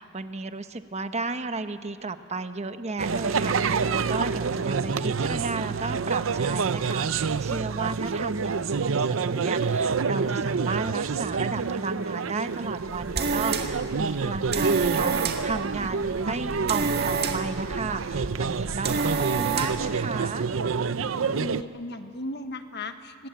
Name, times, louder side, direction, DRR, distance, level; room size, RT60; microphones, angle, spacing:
voice 1, 0.0-20.5, right 3 dB, 35° right, 9 dB, 1.0 m, -34 dB
sound 1, 3.0-21.6, right 5 dB, 85° right, 0.6 m, -28 dB
sound 2, 12.8-19.9, right 4 dB, 55° right, 1.9 m, -30 dB
voice 2, 20.9-23.3, left 2 dB, 55° left, 8 dB, 1.3 m, -37 dB
24.5 x 19.5 x 9.0 m, 2.5 s
head